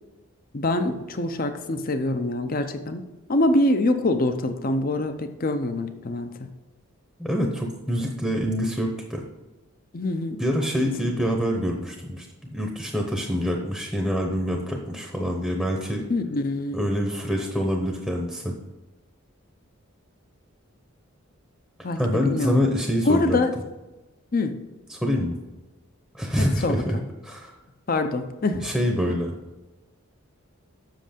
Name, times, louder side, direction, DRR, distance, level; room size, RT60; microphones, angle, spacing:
voice 1, 0.5-3.0 3.3-6.5 9.9-10.4 16.1-16.8 21.8-22.0 22.2-22.6 23.1-23.5 24.3-24.5 26.4-26.7 27.9-28.7, left 2 dB, 40° left, 8 dB, 0.6 m, -24 dB
voice 2, 7.2-9.2 10.4-16.0 16.7-18.5 22.0-23.4 24.9-25.4 26.1-27.6 28.6-29.3, equal, 5° left, 1 dB, 0.8 m, -26 dB
7.7 x 6.5 x 5.1 m, 1.1 s
head